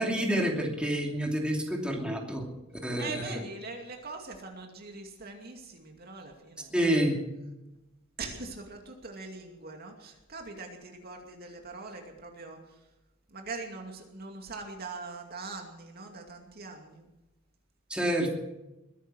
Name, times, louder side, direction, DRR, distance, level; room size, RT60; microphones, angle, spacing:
voice 1, 0.0-2.5 2.8-3.4 6.7-7.2 17.9-18.3, right 1 dB, 5° right, 0 dB, 2.7 m, -28 dB
voice 2, 3.0-6.7 8.2-12.6 13.3-17.1, right 3 dB, 50° right, 3 dB, 2.4 m, -42 dB
21.5 x 10.0 x 6.2 m, 0.96 s
head